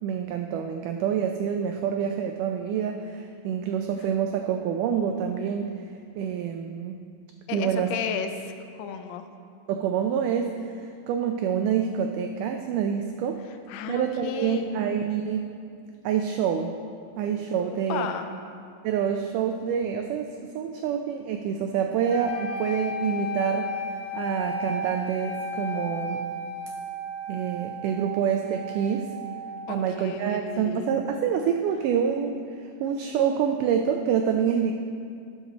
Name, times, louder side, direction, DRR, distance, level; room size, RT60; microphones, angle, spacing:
voice 1, 0.0-5.7 6.2-7.0 7.5-7.9 9.7-10.6 11.1-13.4 13.9-15.5 16.0-16.7 17.2-18.1 18.8-23.7 24.1-26.3 27.3-29.1 29.7-34.7, right 8 dB, 85° right, 4 dB, 1.8 m, -27 dB
voice 2, 7.5-8.5 8.8-9.3 13.7-14.8 17.6-18.3 29.7-30.9, left 7 dB, 80° left, 7 dB, 2.2 m, -33 dB
sound 1, 22.1-30.1, left 1 dB, 55° left, 2.8 m, -34 dB
17.5 x 6.2 x 4.0 m, 2.4 s
omnidirectional pair, 4.2 m